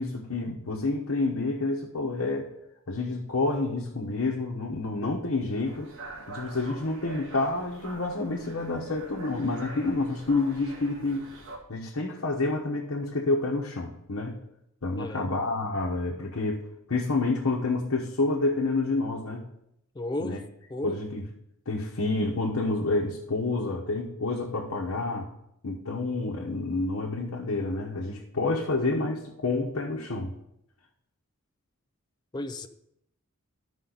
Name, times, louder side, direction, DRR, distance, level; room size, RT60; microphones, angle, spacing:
voice 1, 0.0-2.5 2.9-5.9 6.3-11.3 11.7-14.4 14.8-19.4 20.2-20.4 20.8-21.2 21.7-25.3 25.6-30.3, left 3 dB, 75° left, -2 dB, 1.0 m, -29 dB
sound 1, 5.6-11.6, right 2 dB, 60° right, 1.8 m, -44 dB
voice 2, 15.0-15.3 19.9-20.4 20.7-21.0 32.3-32.7, left 1 dB, 20° left, 8 dB, 0.4 m, -34 dB
13.0 x 5.4 x 4.0 m, 0.78 s
head